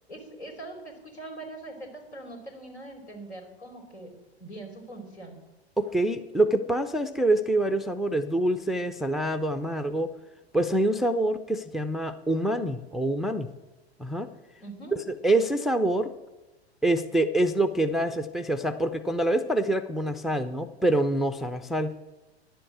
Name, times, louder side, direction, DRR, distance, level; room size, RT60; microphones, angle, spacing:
voice 1, 0.1-4.1 4.4-5.4 14.6-15.0, right 2 dB, 80° left, 3 dB, 3.5 m, -42 dB
voice 2, 5.8-10.1 10.5-13.5 14.0-14.3 15.2-16.1 16.8-22.0, right 1 dB, ahead, 9 dB, 0.4 m, -26 dB
10.5 x 7.7 x 8.4 m, 1.1 s
figure-of-eight pair, 95°, 33 cm